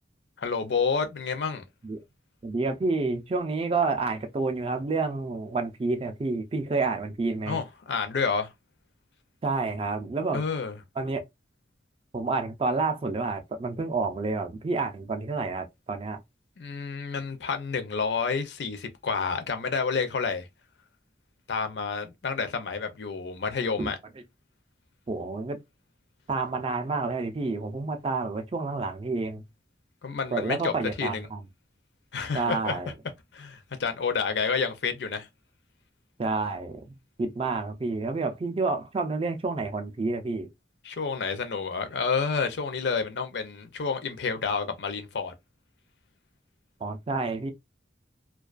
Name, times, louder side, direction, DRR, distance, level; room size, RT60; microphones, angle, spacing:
voice 1, 0.4-1.6 7.5-8.5 10.3-10.7 16.6-20.5 21.5-24.0 30.0-30.7 31.0-31.3 32.1-32.8 33.3-35.3 40.8-45.3, left 5 dB, 70° left, 0.5 m, -29 dB
voice 2, 2.4-7.6 9.4-10.4 11.0-11.2 12.1-16.2 23.8-23.9 25.1-25.6 26.3-29.4 30.3-31.4 32.3-32.9 36.2-40.5 46.8-47.5, right 3 dB, 30° right, 0.4 m, -29 dB
2.3 x 2.3 x 2.3 m
head